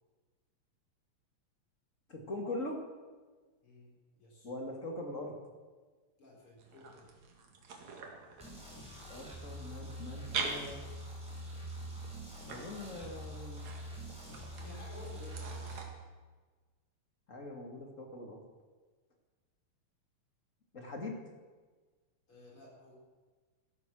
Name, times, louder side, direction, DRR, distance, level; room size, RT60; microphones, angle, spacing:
voice 1, 2.1-2.8 4.4-5.3 9.1-10.8 12.5-13.6 17.3-18.4 20.7-21.2, left 2 dB, 30° left, 2 dB, 2.1 m, -42 dB
voice 2, 3.6-4.5 6.2-7.1 14.6-16.0 22.3-22.9, left 2 dB, 45° left, -3 dB, 5.1 m, -54 dB
sound 1, 6.6-15.8, right 5 dB, 70° right, 3.2 m, -45 dB
sound 2, 8.4-15.8, right 1 dB, ahead, 5.1 m, -45 dB
17.0 x 13.0 x 6.3 m, 1.4 s
omnidirectional pair, 3.3 m